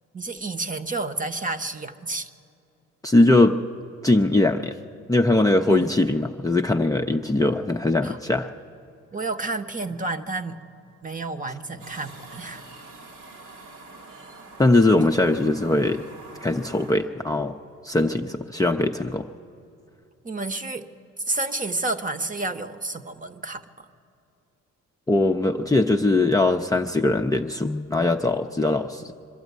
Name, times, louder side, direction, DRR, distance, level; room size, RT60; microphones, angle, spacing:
voice 1, 0.1-2.3 5.7-5.9 8.0-8.2 9.1-10.6 11.0-12.6 20.2-20.9 21.2-23.9, right 3 dB, 25° right, 7 dB, 1.0 m, -30 dB
voice 2, 3.0-3.6 4.0-4.8 5.1-8.5 14.6-16.0 16.4-17.6 17.8-19.3 25.1-29.1, left 2 dB, 10° left, 2 dB, 0.6 m, -21 dB
sound 1, 11.8-17.0, right 3 dB, 85° right, 2.7 m, -45 dB
23.5 x 12.0 x 9.4 m, 2.6 s
cardioid pair, 90°, 30 cm